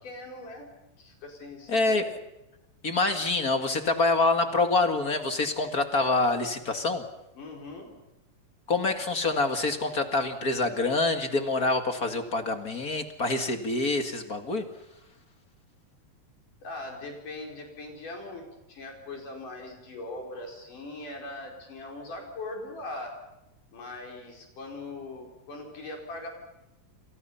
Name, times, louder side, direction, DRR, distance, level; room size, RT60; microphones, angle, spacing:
voice 1, 0.0-0.7 1.0-2.0 7.3-7.9 16.6-23.1 23.7-26.3, left 2 dB, 65° left, 1 dB, 6.3 m, -40 dB
voice 2, 1.7-2.1 2.8-7.1 8.7-14.7, left 3 dB, 35° left, 6 dB, 1.7 m, -26 dB
29.5 x 26.5 x 5.7 m, 0.96 s
omnidirectional pair, 4.0 m